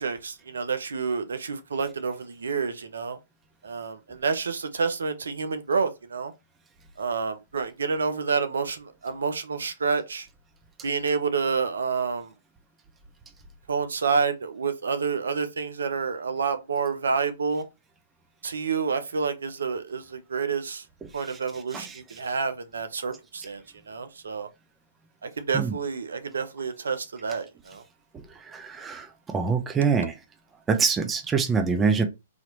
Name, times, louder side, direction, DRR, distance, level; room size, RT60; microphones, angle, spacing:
voice 1, 0.0-3.2 3.6-6.3 7.0-10.3 10.8-12.3 13.7-17.6 18.4-20.8 21.1-23.6 23.9-24.5 25.2-27.8, right 5 dB, 80° right, 0.6 m, -28 dB
voice 2, 28.5-29.0 29.3-30.1 30.7-32.0, right 5 dB, 15° right, 0.7 m, -24 dB
4.0 x 2.9 x 3.0 m
hypercardioid pair, 120°, 0 cm